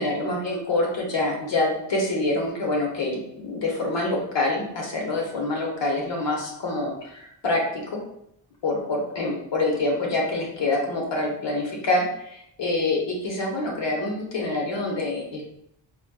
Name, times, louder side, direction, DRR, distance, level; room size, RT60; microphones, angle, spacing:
voice 1, 0.0-8.0 8.6-15.4, left 2 dB, 70° left, -1 dB, 1.1 m, -26 dB
4.1 x 2.4 x 2.3 m, 0.76 s
cardioid pair, 75°, 44 cm